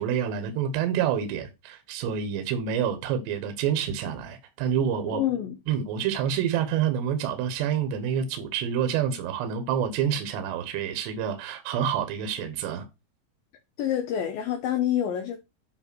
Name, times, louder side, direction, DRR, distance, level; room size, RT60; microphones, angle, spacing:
voice 1, 0.0-5.2 5.7-12.8, right 8 dB, 75° right, 3.1 m, -28 dB
voice 2, 5.1-5.6 13.8-15.4, left 10 dB, 80° left, 2.1 m, -27 dB
8.3 x 3.4 x 6.0 m
omnidirectional pair, 5.3 m